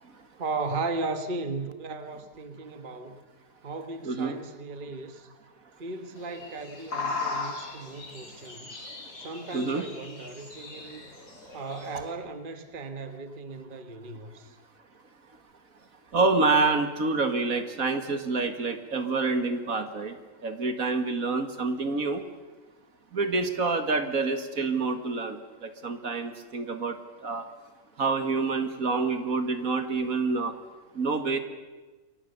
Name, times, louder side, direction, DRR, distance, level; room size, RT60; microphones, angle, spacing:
voice 1, 0.4-3.2 3.6-5.3 5.8-8.8 9.2-11.1 11.5-14.5, right 3 dB, 35° right, 1.6 m, -36 dB
sound 1, 6.2-12.1, left 4 dB, 90° left, 3.9 m, -38 dB
voice 2, 9.5-9.9 16.1-20.2 20.4-22.2 23.1-27.0 27.2-27.5 28.0-30.5 31.0-31.4, right 3 dB, 60° right, 2.2 m, -27 dB
28.5 x 23.0 x 6.8 m
omnidirectional pair, 1.7 m